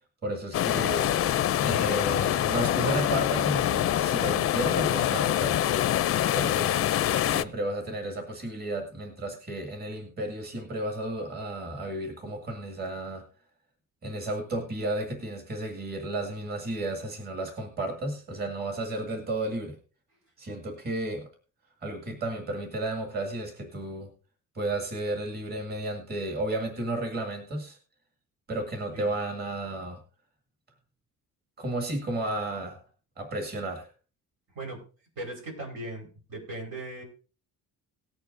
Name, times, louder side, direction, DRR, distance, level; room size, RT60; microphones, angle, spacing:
voice 1, 0.2-1.1 1.6-5.6 6.2-6.8 7.2-13.2 14.0-19.8 20.4-21.3 21.8-24.1 24.6-27.8 28.5-30.0 31.6-32.8 33.2-33.9, right 1 dB, 30° right, 3 dB, 2.1 m, -33 dB
sound 1, 0.5-7.4, left 11 dB, 45° left, 0.4 m, -25 dB
voice 2, 35.2-37.0, right 2 dB, 85° right, 1 dB, 4.6 m, -38 dB
19.0 x 8.6 x 2.6 m, 0.35 s
cardioid pair, 165°, 33 cm